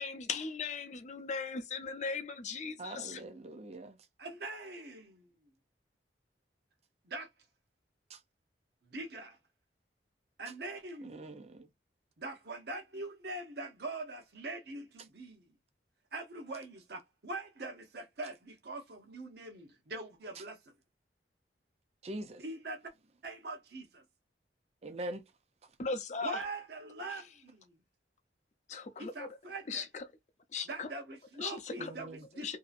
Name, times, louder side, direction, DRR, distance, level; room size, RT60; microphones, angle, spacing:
voice 1, 0.0-3.2 25.8-26.4 28.7-29.3 29.7-30.0 30.5-30.9 31.4-31.9 32.4-32.6, left 4 dB, 40° left, 0.5 m, -38 dB
voice 2, 2.8-4.0 8.1-8.2 11.0-11.7 22.0-22.4 24.8-25.2 31.8-32.2, right 1 dB, 40° right, 0.5 m, -43 dB
voice 3, 4.2-5.3 7.0-7.3 8.9-9.4 10.4-11.3 12.2-15.4 16.1-20.6 22.4-22.9 23.2-24.0 26.2-27.7 29.0-29.9 30.7-32.5, right 2 dB, 65° right, 0.8 m, -43 dB
2.7 x 2.4 x 2.5 m
head